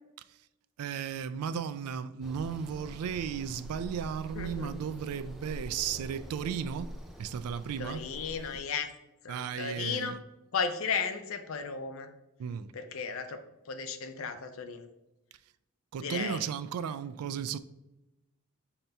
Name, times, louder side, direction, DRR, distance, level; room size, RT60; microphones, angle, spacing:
voice 1, 0.8-8.1 9.3-10.2 12.4-12.7 15.9-17.6, right 7 dB, 85° right, 0.3 m, -35 dB
sound 1, 2.2-8.6, equal, ahead, 0.3 m, -45 dB
voice 2, 4.4-4.7 7.8-8.9 9.2-10.2 10.5-12.1 12.7-13.4 13.7-14.9 16.0-16.4, left 5 dB, 65° left, 0.5 m, -34 dB
5.3 x 2.9 x 3.4 m
head